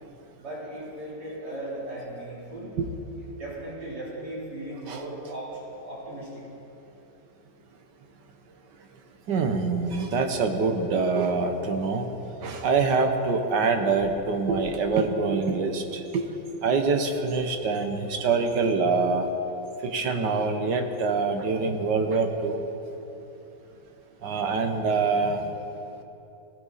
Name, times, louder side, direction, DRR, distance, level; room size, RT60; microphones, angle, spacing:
voice 1, 0.4-2.7 3.2-6.4, right 1 dB, 70° right, -7 dB, 4.2 m, -37 dB
voice 2, 9.3-12.1 12.4-16.3 16.6-19.3 19.8-22.6 24.2-25.5, right 4 dB, 85° right, 5 dB, 1.8 m, -25 dB
18.0 x 16.0 x 4.2 m, 3.0 s
omnidirectional pair, 1.8 m